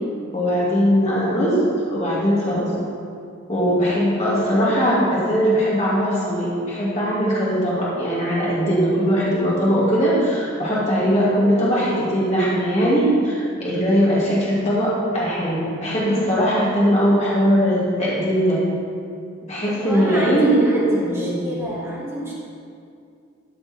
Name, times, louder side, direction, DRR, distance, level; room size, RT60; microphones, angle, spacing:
voice 1, 0.3-1.6 1.9-2.7 3.5-18.6 19.5-21.5, equal, 35° left, -7 dB, 2.3 m, -20 dB
voice 2, 19.7-22.3, right 1 dB, 15° right, -6 dB, 1.8 m, -29 dB
13.5 x 5.5 x 4.3 m, 2.4 s
head